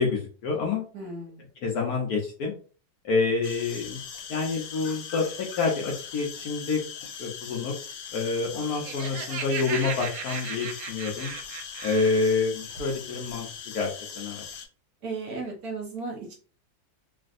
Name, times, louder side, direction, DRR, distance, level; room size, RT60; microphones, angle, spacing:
voice 1, 0.0-0.8 1.6-2.5 3.0-4.0 4.3-6.8 7.2-7.7 8.1-11.3 11.8-13.5 13.7-14.4, left 4 dB, 65° left, 0 dB, 1.0 m, -27 dB
voice 2, 0.9-1.4 15.0-16.3, right 3 dB, 60° right, -1 dB, 1.3 m, -35 dB
sound 1, 3.4-14.7, left 7 dB, 90° left, 1.4 m, -40 dB
Laughter, 8.5-12.3, right 7 dB, 80° right, 0.7 m, -36 dB
3.2 x 2.6 x 2.5 m, 0.38 s
omnidirectional pair, 2.0 m